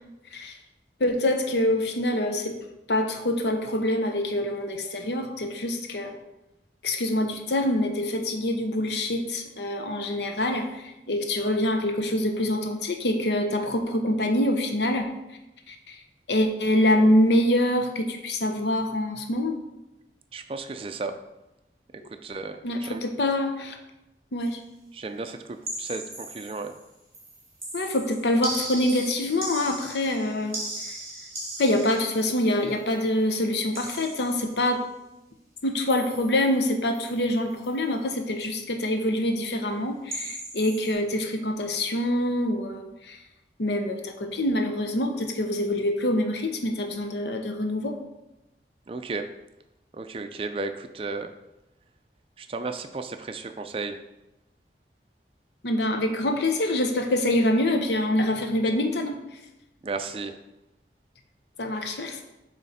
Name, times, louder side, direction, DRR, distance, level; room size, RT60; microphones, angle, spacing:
voice 1, 1.0-2.5 2.9-6.2 6.8-15.1 15.7-16.0 16.3-19.6 22.6-23.8 24.3-24.6 27.7-30.6 30.8-31.0 31.6-34.8 35.6-43.2 43.6-48.0 55.6-59.2 61.6-62.2, left 1 dB, 75° left, 5 dB, 0.7 m, -25 dB
voice 2, 20.3-21.1 22.2-23.0 24.9-26.7 48.9-49.3 49.9-51.3 52.4-54.0 59.8-60.4, right 3 dB, 30° right, 7 dB, 0.4 m, -34 dB
sound 1, 25.6-26.8 27.1-33.1 33.7-34.7 35.9-36.6 36.9-37.2 37.5-37.8 40.1-40.9, right 1 dB, 15° right, 2.2 m, -38 dB
7.7 x 3.2 x 4.2 m, 0.95 s
head